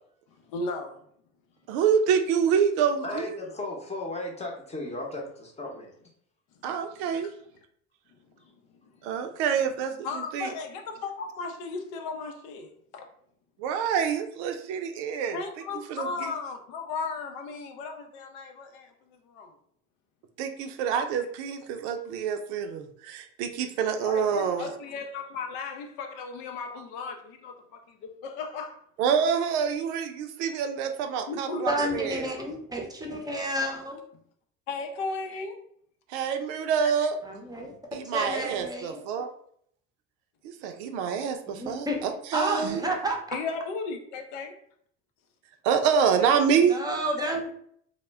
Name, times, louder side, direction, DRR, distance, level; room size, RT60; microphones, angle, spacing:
voice 1, 0.5-1.0 10.0-12.7 12.9-13.1 15.3-18.9 19.3-19.5 24.0-28.8 31.3-31.7 34.7-35.5 43.3-44.5, left 4 dB, 75° left, 5 dB, 0.6 m, -35 dB
voice 2, 1.7-3.4 6.6-7.3 9.0-10.5 13.6-15.4 15.9-16.3 20.4-24.7 29.0-32.2 36.1-37.2 37.9-39.3 40.6-42.8 45.6-46.8, right 7 dB, 80° right, 6 dB, 0.5 m, -27 dB
voice 3, 3.0-5.9, left 2 dB, 20° left, 0 dB, 0.8 m, -35 dB
voice 4, 31.7-34.0 37.2-37.7 38.0-39.0 41.5-43.2 46.7-47.5, right 1 dB, 10° right, 1 dB, 0.6 m, -31 dB
2.1 x 2.0 x 3.3 m, 0.65 s
supercardioid pair, 80°, 33 cm